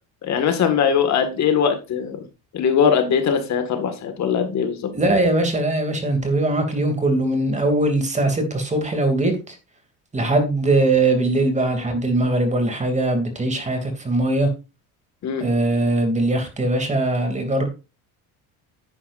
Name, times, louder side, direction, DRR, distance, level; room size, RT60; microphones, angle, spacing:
voice 1, 0.2-2.2 2.5-4.9 15.2-15.4, left 7 dB, 45° left, 7 dB, 1.8 m, -21 dB
voice 2, 4.9-9.6 10.1-14.5 15.4-17.7, right 2 dB, 20° right, 6 dB, 2.6 m, -21 dB
9.9 x 9.9 x 2.6 m, 0.29 s
cardioid pair, 125°, 37 cm